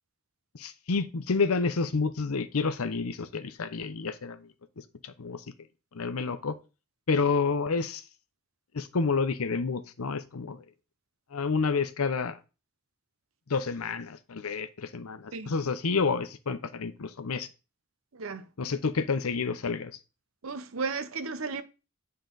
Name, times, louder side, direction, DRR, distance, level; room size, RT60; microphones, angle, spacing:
voice 1, 0.5-4.4 5.0-5.4 5.9-6.6 7.1-8.0 8.7-10.6 11.3-12.4 13.5-17.5 18.6-19.9, left 4 dB, 85° left, 0.7 m, -29 dB
voice 2, 18.1-18.5 20.4-21.6, right 4 dB, 70° right, 0.8 m, -34 dB
9.0 x 3.9 x 3.9 m
head